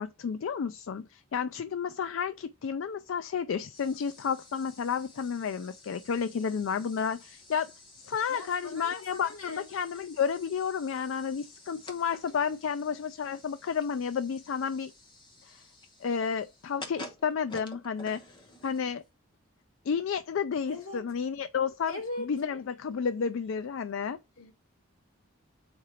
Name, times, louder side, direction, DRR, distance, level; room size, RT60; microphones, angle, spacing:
voice 1, 0.0-7.7 8.0-14.9 15.5-15.6 16.0-18.2 18.6-19.0 19.9-24.2, left 6 dB, 65° left, 0.4 m, -31 dB
sound 1, 3.7-19.1, left 2 dB, 20° left, 1.1 m, -51 dB
voice 2, 8.3-9.7 20.7-21.0 21.9-22.3 24.4-24.5, left 2 dB, 85° left, 2.7 m, -39 dB
4.7 x 4.4 x 4.9 m
head